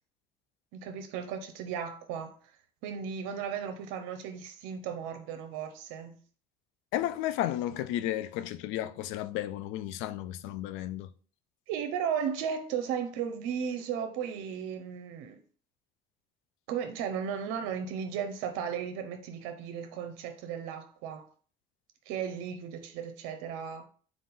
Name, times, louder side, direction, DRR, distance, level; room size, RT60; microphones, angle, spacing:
voice 1, 0.7-2.4 2.8-6.2 11.7-15.4 16.7-21.3 22.1-23.9, right 7 dB, 75° right, 0.6 m, -35 dB
voice 2, 6.9-11.1, left 13 dB, 75° left, 0.4 m, -33 dB
3.7 x 2.4 x 4.0 m
supercardioid pair, 70°, 21 cm